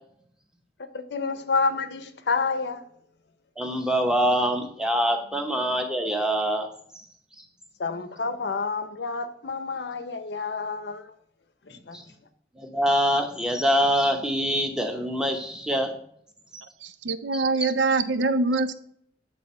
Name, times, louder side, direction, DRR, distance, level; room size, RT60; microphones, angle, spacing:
voice 1, 0.8-2.9 7.8-11.2 11.6-12.0, left 4 dB, 70° left, 0.6 m, -29 dB
voice 2, 3.6-6.7 6.9-7.1 7.4-7.5 11.7-12.0 12.6-16.0 16.5-16.6 17.3-17.4, equal, 5° right, 0.7 m, -25 dB
voice 3, 16.8-18.7, right 3 dB, 85° right, 0.5 m, -24 dB
8.5 x 3.4 x 4.2 m
head